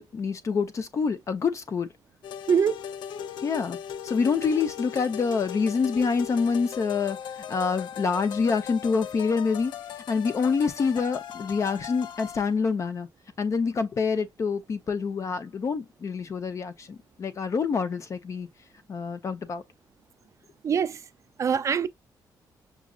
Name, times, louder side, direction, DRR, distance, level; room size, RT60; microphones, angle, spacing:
voice 1, 0.0-1.9 3.4-3.8 4.0-7.2 7.5-9.7 10.1-13.1 13.4-18.5 18.9-19.6, left 5 dB, 40° left, 0.7 m, -26 dB
sound 1, 2.2-12.5, left 9 dB, 90° left, 0.4 m, -38 dB
voice 2, 2.5-2.8 20.6-21.0 21.4-21.9, right 7 dB, 40° right, 0.4 m, -23 dB
6.1 x 2.5 x 2.4 m
cardioid pair, 140°, 8 cm